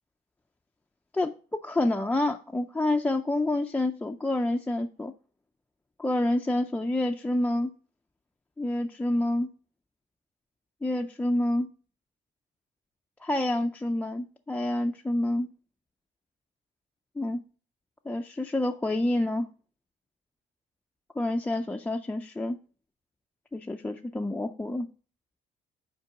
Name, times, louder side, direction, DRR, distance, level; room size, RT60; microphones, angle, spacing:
voice 1, 1.1-5.1 6.0-7.7 8.6-9.5 10.8-11.7 13.2-15.5 17.2-17.4 18.1-19.5 21.2-22.6 23.5-24.9, left 1 dB, 10° left, 0.3 m, -28 dB
5.5 x 4.4 x 5.8 m
cardioid pair, 155°, 18 cm